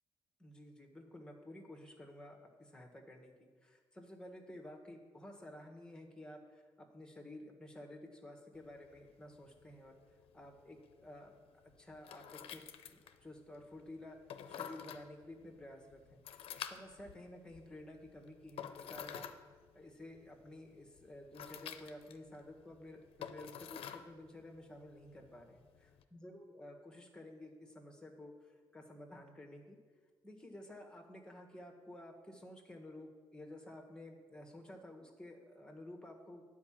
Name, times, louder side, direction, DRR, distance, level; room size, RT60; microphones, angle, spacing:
voice 1, 0.4-10.0 10.3-14.2 14.5-16.2 16.6-19.3 19.7-29.8 30.2-36.4, left 1 dB, 10° left, 2 dB, 1.5 m, -52 dB
sound 1, 8.5-26.0, left 9 dB, 80° left, 0.5 m, -51 dB
9.6 x 4.8 x 7.5 m, 1.5 s
cardioid pair, 80°, 10 cm